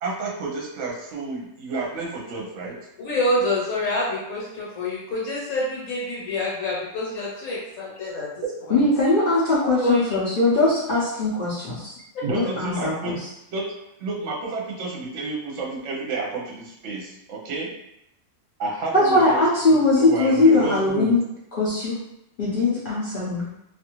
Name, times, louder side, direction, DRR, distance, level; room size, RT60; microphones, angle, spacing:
voice 1, 0.0-2.7 8.4-8.5 12.2-13.2 13.5-13.7 14.0-17.7 18.6-21.1, right 3 dB, 65° right, -3 dB, 0.9 m, -30 dB
voice 2, 3.0-8.3 9.8-10.2, left 1 dB, 70° left, -6 dB, 1.2 m, -26 dB
voice 3, 8.7-11.9 12.3-13.2 18.9-21.2 21.5-22.0 22.4-23.5, left 2 dB, 50° left, -7 dB, 0.7 m, -20 dB
2.6 x 2.4 x 2.9 m, 0.82 s
omnidirectional pair, 1.5 m